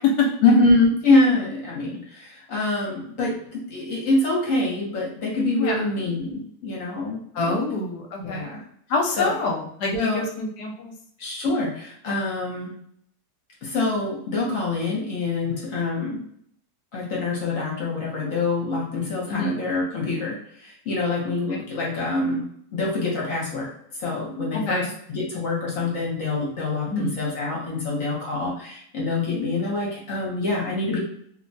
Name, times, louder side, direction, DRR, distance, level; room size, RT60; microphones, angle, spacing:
voice 1, 0.4-7.6 8.2-8.6 9.2-9.3 9.9-10.2 11.2-12.7 13.6-16.2 16.9-22.4 22.7-23.7 24.0-24.8 25.1-31.0, left 2 dB, 55° left, -3 dB, 1.1 m, -25 dB
voice 2, 7.3-8.6 8.9-10.9 19.3-19.7 21.5-21.7 24.5-24.9 26.9-27.2, left 3 dB, 75° left, 1 dB, 1.1 m, -26 dB
3.1 x 2.2 x 2.6 m, 0.67 s
omnidirectional pair, 1.8 m